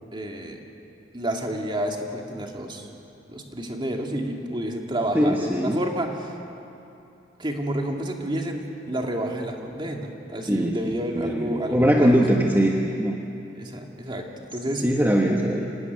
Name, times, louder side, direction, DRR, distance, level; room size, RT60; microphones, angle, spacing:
voice 1, 0.1-0.6 1.1-2.9 3.3-6.3 7.4-12.2 13.5-14.8, right 1 dB, 25° right, 1 dB, 2.5 m, -30 dB
voice 2, 5.1-5.8 10.5-13.1 14.8-15.7, equal, 10° right, 0 dB, 1.4 m, -21 dB
25.5 x 18.5 x 9.7 m, 2.8 s
head